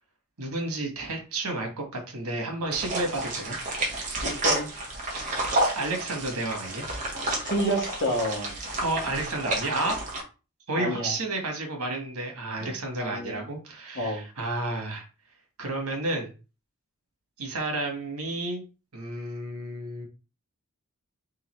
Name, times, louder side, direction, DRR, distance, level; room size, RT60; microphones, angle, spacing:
voice 1, 0.4-3.6 5.7-6.8 8.8-10.1 10.7-15.1 15.6-16.3 17.4-18.6 18.9-20.0, right 2 dB, 85° right, 3 dB, 1.6 m, -31 dB
sound 1, 2.7-10.2, right 1 dB, 35° right, 1.3 m, -30 dB
voice 2, 4.2-4.7 7.4-8.8 10.8-11.1 12.6-13.4 13.9-14.2, right 1 dB, 55° left, 1 dB, 1.5 m, -30 dB
4.0 x 3.8 x 3.1 m, 0.31 s
head